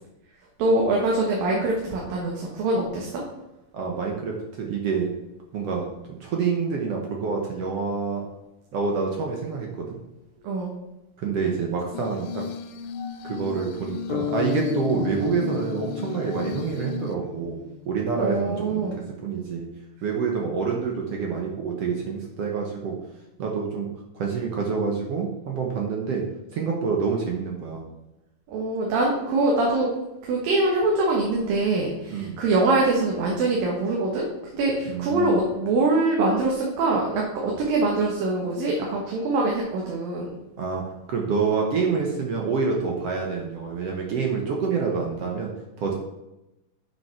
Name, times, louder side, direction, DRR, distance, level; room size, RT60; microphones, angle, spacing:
voice 1, 0.6-3.2 10.4-10.7 18.2-19.0 28.5-29.9 30.2-34.3 34.5-40.4, right 2 dB, 90° right, -2 dB, 3.1 m, -23 dB
voice 2, 3.7-5.1 5.5-8.2 8.7-10.0 11.2-12.4 13.2-17.6 17.9-18.9 19.2-19.7 20.0-23.0 23.4-23.9 24.1-26.2 26.5-27.8 32.1-32.4 34.9-35.4 40.6-45.5 45.8-45.9, right 5 dB, 60° right, 0 dB, 1.7 m, -27 dB
Glass, 11.9-17.1, left 6 dB, 85° left, 1.6 m, -36 dB
sound 1, 14.1-18.0, left 10 dB, 50° left, 1.6 m, -32 dB
7.5 x 6.2 x 5.8 m, 0.96 s
omnidirectional pair, 3.9 m